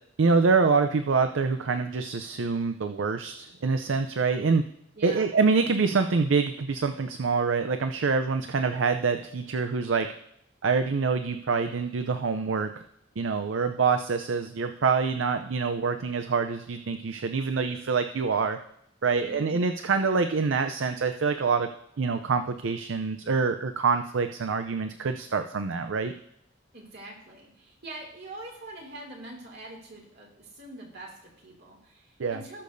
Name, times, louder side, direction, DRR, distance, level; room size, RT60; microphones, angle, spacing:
voice 1, 0.2-4.6 5.0-10.1 10.6-12.7 13.2-18.6 19.0-21.7 22.0-26.1 32.2-32.4, right 4 dB, 85° right, 8 dB, 0.5 m, -26 dB
voice 2, 4.9-5.3 19.1-19.5 26.7-32.6, right 2 dB, 55° right, -1 dB, 2.5 m, -44 dB
18.5 x 6.7 x 2.6 m, 0.76 s
head